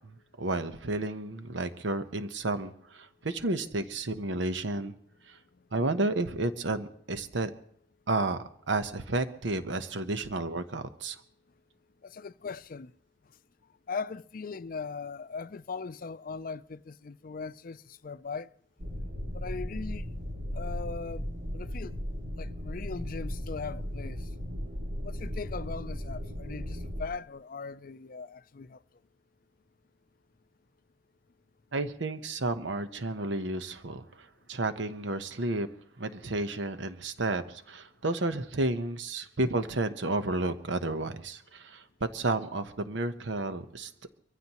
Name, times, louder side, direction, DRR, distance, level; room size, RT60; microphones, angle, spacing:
voice 1, 0.4-4.9 5.3-5.4 5.7-7.5 8.1-8.4 8.7-11.2 31.7-35.7 36.0-41.8 42.1-43.9, right 2 dB, 80° right, 1.0 m, -31 dB
voice 2, 12.0-12.9 13.9-18.5 19.3-20.0 20.5-21.3 21.5-21.9 22.4-24.2 25.0-28.8, left 4 dB, 50° left, 0.5 m, -39 dB
sound 1, 18.8-27.0, equal, 50° right, 2.1 m, -36 dB
24.5 x 15.0 x 3.0 m
head